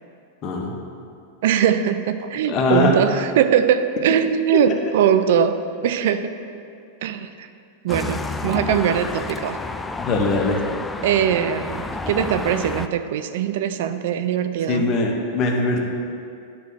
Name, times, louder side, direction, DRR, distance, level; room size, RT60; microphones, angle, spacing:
voice 1, 0.4-0.8 2.5-2.9 10.0-10.6 14.7-15.8, left 3 dB, 35° left, 1 dB, 1.2 m, -21 dB
voice 2, 1.4-6.3 7.0-7.5 7.8-9.6 11.0-14.9, right 8 dB, 70° right, 10 dB, 0.4 m, -21 dB
sound 1, 7.9-12.9, left 3 dB, 10° left, 0.3 m, -30 dB
9.8 x 3.5 x 6.3 m, 2.5 s
hypercardioid pair, 125°, 0 cm